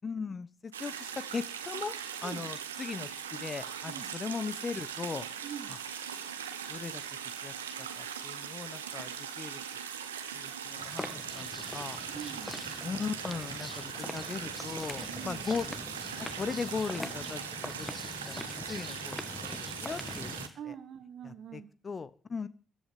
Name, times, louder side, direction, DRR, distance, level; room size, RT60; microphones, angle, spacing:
voice 1, 0.0-1.9 2.2-5.3 6.7-7.0 7.4-9.6 10.3-11.1 11.3-12.0 12.8-15.8 16.2-17.9 18.3-20.4 20.7-20.8 21.2-22.5, left 5 dB, 35° left, 16 dB, 1.1 m, -38 dB
sound 1, 0.7-20.5, right 8 dB, 80° right, 1.3 m, -40 dB
voice 2, 5.4-5.8 12.1-12.6 15.1-15.5 20.5-21.7, right 9 dB, 55° right, 8 dB, 2.2 m, -44 dB
sound 2, 10.8-20.5, left 2 dB, 20° left, 1.9 m, -43 dB
15.0 x 11.0 x 7.4 m, 0.40 s
figure-of-eight pair, 40°, 0 cm